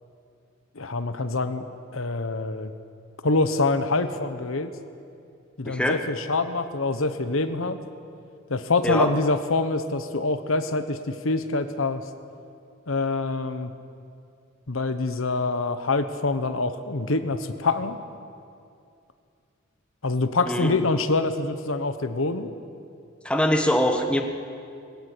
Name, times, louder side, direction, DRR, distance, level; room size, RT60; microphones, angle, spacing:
voice 1, 0.7-1.6 1.9-2.7 3.2-4.7 5.6-7.8 8.5-12.0 12.9-13.7 14.7-18.0 20.0-22.5, left 3 dB, 75° left, 10 dB, 1.1 m, -25 dB
voice 2, 5.6-6.0 8.8-9.1 20.5-20.7 23.2-24.2, equal, 5° left, 4 dB, 1.3 m, -23 dB
20.5 x 18.0 x 8.5 m, 2.4 s
head